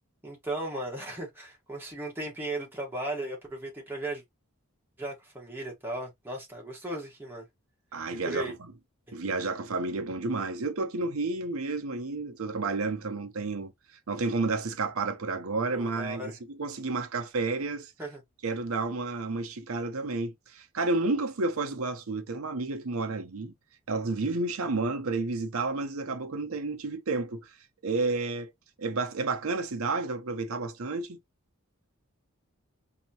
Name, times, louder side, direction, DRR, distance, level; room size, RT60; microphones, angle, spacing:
voice 1, 0.2-4.2 5.0-7.4 8.1-8.5 9.1-9.2 15.7-16.4 18.0-18.2, right 1 dB, 10° right, 1.3 m, -36 dB
voice 2, 7.9-8.5 9.1-13.7 14.1-17.9 18.4-23.5 23.9-27.5 27.8-28.5 28.8-31.2, right 3 dB, 75° right, 0.7 m, -31 dB
4.1 x 2.9 x 2.8 m
head